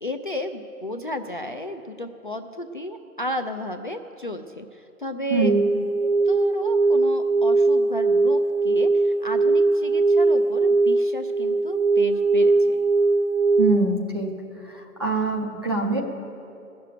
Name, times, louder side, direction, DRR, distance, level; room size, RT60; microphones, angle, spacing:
voice 1, 0.0-5.6 6.3-12.8, left 1 dB, 35° left, 7 dB, 0.4 m, -33 dB
sound 1, 5.4-13.8, right 3 dB, 50° right, 1.1 m, -20 dB
voice 2, 13.6-14.3 14.6-16.0, right 3 dB, 20° right, 1 dB, 0.5 m, -24 dB
15.0 x 6.8 x 8.7 m, 2.7 s
figure-of-eight pair, 145°, 45 cm